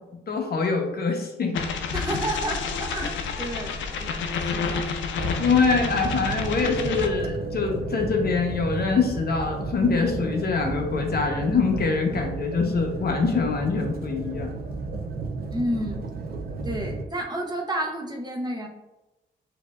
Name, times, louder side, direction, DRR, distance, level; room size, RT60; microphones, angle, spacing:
voice 1, 0.3-1.6 5.4-14.5, left 4 dB, 50° left, 3 dB, 0.8 m, -24 dB
sound 1, 1.5-7.1, left 5 dB, 70° left, 0.5 m, -30 dB
voice 2, 1.9-4.9 15.5-16.0 16.6-18.7, right 1 dB, 20° right, 0 dB, 0.9 m, -31 dB
sound 2, 5.2-17.0, right 3 dB, 50° right, 0.6 m, -33 dB
Keyboard (musical), 6.7-9.2, right 2 dB, 70° right, 1.3 m, -37 dB
6.0 x 2.8 x 2.4 m, 1.0 s
supercardioid pair, 55°, 20 cm